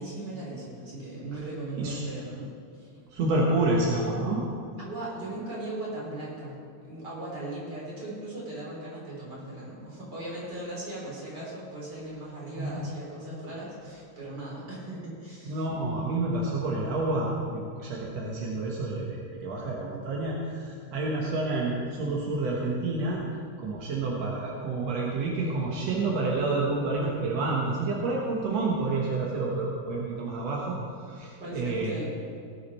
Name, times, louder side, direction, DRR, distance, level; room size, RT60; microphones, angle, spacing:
voice 1, 0.0-3.0 4.8-6.5 6.8-15.7 31.4-32.0, right 1 dB, 25° right, -6 dB, 4.0 m, -38 dB
voice 2, 3.1-4.4 12.6-12.7 15.5-23.2 23.6-30.8 31.1-32.0, right 2 dB, 65° right, -3 dB, 1.6 m, -29 dB
17.5 x 8.5 x 4.3 m, 2.4 s
omnidirectional pair, 4.7 m